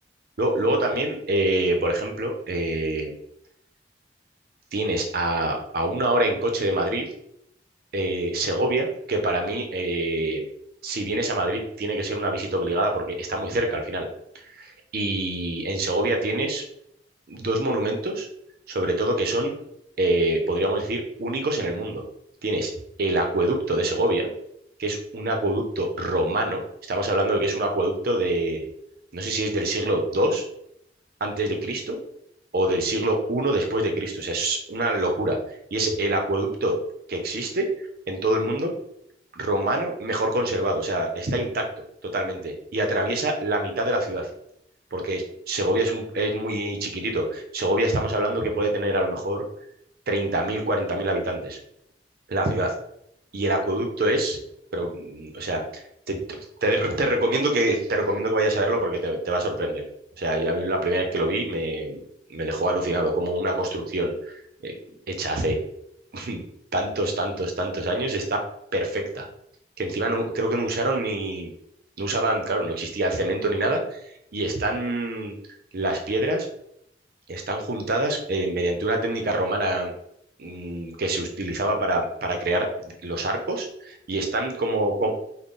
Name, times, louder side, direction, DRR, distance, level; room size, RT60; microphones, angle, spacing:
voice 1, 0.4-3.1 4.7-7.1 7.9-10.4 10.8-14.1 14.5-16.6 17.3-18.3 18.7-19.5 20.0-22.0 22.4-22.7 23.0-24.3 24.8-26.6 26.9-28.7 29.1-30.4 31.2-32.0 32.5-35.4 35.7-36.8 37.1-37.7 38.1-38.7 39.3-41.6 42.0-44.3 44.9-49.4 50.1-51.6 52.3-52.7 53.3-54.4 54.7-59.8 60.2-62.0 62.3-64.3 64.6-64.7 65.1-65.6 66.1-66.4 66.7-68.4 68.7-69.3 69.8-71.5 72.0-74.0 74.3-75.3 75.7-76.5 77.3-79.9 80.4-85.1, right 1 dB, 55° right, 3 dB, 0.6 m, -25 dB
3.6 x 2.1 x 3.8 m, 0.77 s
head